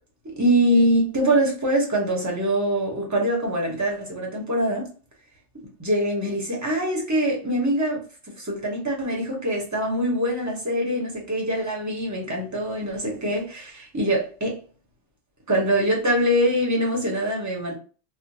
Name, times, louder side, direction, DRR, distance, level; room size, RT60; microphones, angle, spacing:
voice 1, 0.2-4.9 5.8-8.0 8.4-14.6 15.5-17.8, right 1 dB, 20° right, 0.7 m, -23 dB
3.0 x 2.1 x 2.6 m
omnidirectional pair, 1.2 m